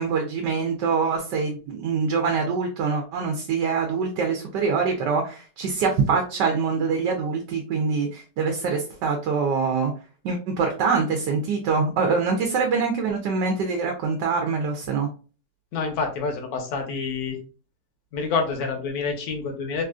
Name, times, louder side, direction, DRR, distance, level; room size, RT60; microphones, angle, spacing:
voice 1, 0.0-9.9 10.2-15.1, right 5 dB, 80° right, 3 dB, 1.2 m, -24 dB
voice 2, 15.7-17.4 18.1-19.8, left 4 dB, 65° left, 4 dB, 1.2 m, -27 dB
3.4 x 2.4 x 2.3 m, 0.37 s
omnidirectional pair, 1.8 m